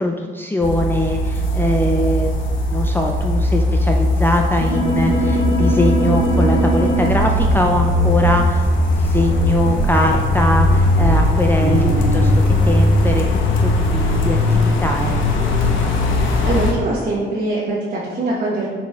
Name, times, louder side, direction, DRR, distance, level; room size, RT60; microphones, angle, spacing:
voice 1, 0.0-8.7 9.0-13.3 13.6-15.2, left 1 dB, 10° left, 2 dB, 0.5 m, -21 dB
sound 1, 0.6-16.7, left 1 dB, 80° left, 1.0 m, -19 dB
sound 2, 4.6-8.3 9.2-12.7, right 1 dB, 75° right, 1.6 m, -22 dB
voice 2, 16.0-18.7, right 2 dB, 45° right, -6 dB, 1.3 m, -23 dB
7.0 x 4.4 x 3.5 m, 1.5 s
cardioid pair, 90°, 20 cm